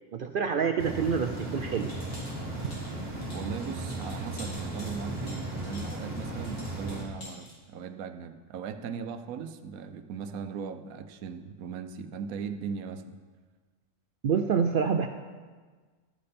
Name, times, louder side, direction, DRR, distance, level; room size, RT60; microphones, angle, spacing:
voice 1, 0.1-1.9 14.2-15.1, right 6 dB, 70° right, 6 dB, 0.5 m, -27 dB
sound 1, 0.8-7.0, right 2 dB, 30° right, 1.7 m, -36 dB
sound 2, 1.3-7.5, left 1 dB, 85° left, 3.0 m, -49 dB
voice 2, 3.3-13.2, right 6 dB, 90° right, 9 dB, 1.1 m, -38 dB
12.5 x 8.5 x 4.2 m, 1.4 s
omnidirectional pair, 1.4 m